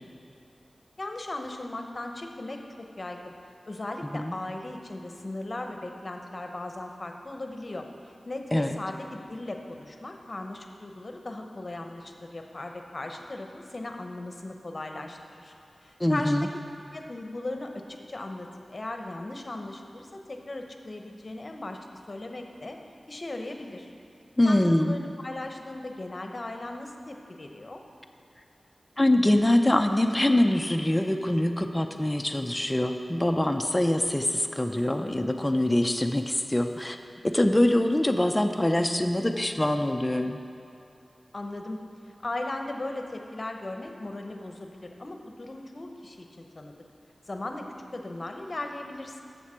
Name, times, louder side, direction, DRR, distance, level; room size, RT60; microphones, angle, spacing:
voice 1, 1.0-3.3 3.7-7.9 8.2-15.5 15.8-16.5 16.9-21.8 22.1-22.8 23.1-23.9 24.4-27.8 41.3-41.8 42.2-46.7 47.3-47.7 47.9-49.2, left 2 dB, 45° left, 4 dB, 0.8 m, -37 dB
voice 2, 16.0-16.5 24.4-25.0 29.0-37.0 37.2-40.4, left 1 dB, 20° left, 5 dB, 0.4 m, -24 dB
7.2 x 6.7 x 6.1 m, 2.7 s
wide cardioid pair, 60°, 0 cm